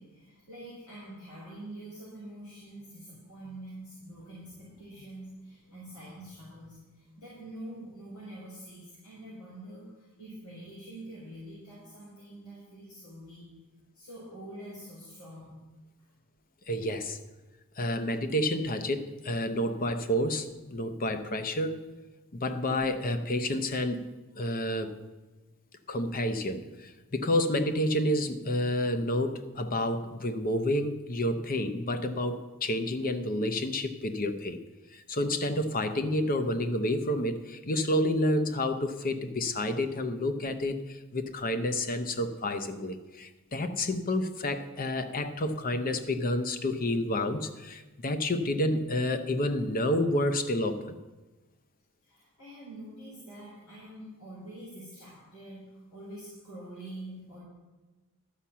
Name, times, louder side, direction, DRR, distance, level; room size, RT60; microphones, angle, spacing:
voice 1, 0.0-13.5 13.9-15.6 52.0-57.4, right 1 dB, 85° left, -8 dB, 3.8 m, -46 dB
voice 2, 16.7-17.2 17.8-21.8 22.3-24.9 25.9-34.6 34.9-51.0, left 1 dB, 40° left, 9 dB, 0.8 m, -29 dB
11.5 x 5.7 x 7.3 m, 1.2 s
head